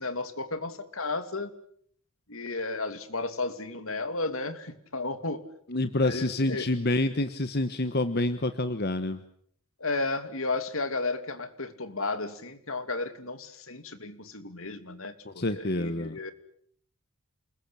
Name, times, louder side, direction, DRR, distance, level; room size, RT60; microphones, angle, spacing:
voice 1, 0.0-1.5 2.3-5.4 6.0-6.6 9.8-16.3, left 3 dB, 70° left, 10 dB, 2.7 m, -33 dB
voice 2, 5.7-9.2 15.2-16.3, left 2 dB, 45° left, 10 dB, 1.3 m, -28 dB
28.5 x 21.0 x 8.8 m, 0.66 s
head